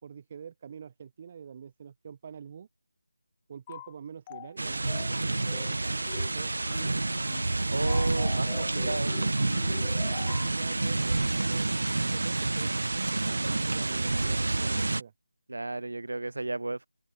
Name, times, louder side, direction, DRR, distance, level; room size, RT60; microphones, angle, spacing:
voice 1, 0.0-2.7 3.5-6.9 10.0-12.8 13.1-15.1, right 7 dB, 20° right, 1.6 m, -46 dB
sound 1, 3.7-3.9 4.3-4.5 4.9-5.2 5.5-5.7 6.1-6.3 6.7-6.9 7.3-7.5 7.9-10.5, left 14 dB, 10° left, 0.4 m, -43 dB
sound 2, 4.6-15.0, right 2 dB, 65° right, 0.6 m, -28 dB
voice 2, 7.7-9.2 15.5-16.9, right 2 dB, 80° right, 1.1 m, -33 dB
figure-of-eight pair, 180°, 0 cm